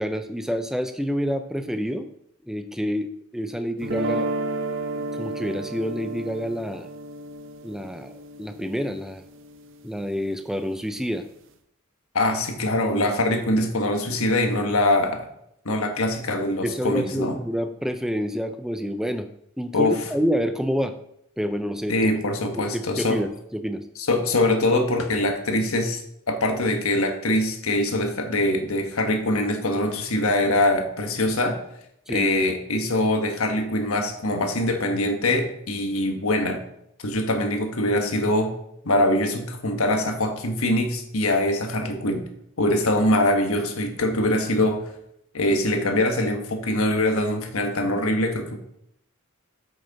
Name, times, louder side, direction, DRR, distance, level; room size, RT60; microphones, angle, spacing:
voice 1, 0.0-2.1 2.4-3.1 3.3-4.3 4.9-6.9 7.6-9.2 9.8-11.2 16.6-19.3 19.6-20.9 21.4-22.1 22.6-23.8 32.1-32.3, equal, ahead, 8 dB, 0.4 m, -28 dB
sound 1, 3.8-9.9, right 2 dB, 60° right, 0.6 m, -32 dB
voice 2, 12.1-15.3 15.6-17.4 19.7-20.0 21.9-23.2 24.1-26.0 26.3-31.6 32.1-36.6 37.0-38.6 38.8-42.3 42.6-44.9 45.3-48.6, left 1 dB, 85° left, 5 dB, 1.3 m, -23 dB
8.3 x 6.4 x 4.1 m, 0.76 s
head